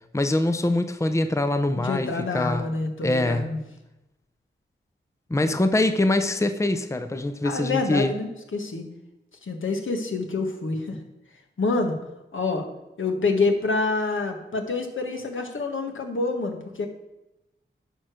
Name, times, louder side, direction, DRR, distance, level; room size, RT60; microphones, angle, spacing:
voice 1, 0.1-2.7 3.0-3.6 5.3-8.1, left 2 dB, 15° left, 9 dB, 0.7 m, -24 dB
voice 2, 1.7-3.6 5.4-5.5 7.4-8.8 9.4-11.0 11.6-12.0 12.3-12.7 13.0-16.9, left 3 dB, 70° left, 4 dB, 1.6 m, -27 dB
10.0 x 5.0 x 6.3 m, 0.96 s
cardioid pair, 50°, 21 cm